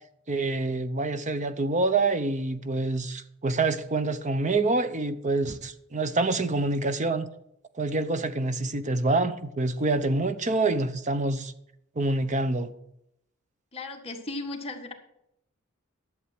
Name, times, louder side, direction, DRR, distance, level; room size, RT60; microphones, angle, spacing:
voice 1, 0.3-7.3 7.8-11.5 12.0-12.7, right 2 dB, 35° right, 0.7 m, -26 dB
voice 2, 13.7-14.9, left 2 dB, 30° left, 1.6 m, -36 dB
11.5 x 7.5 x 6.0 m
head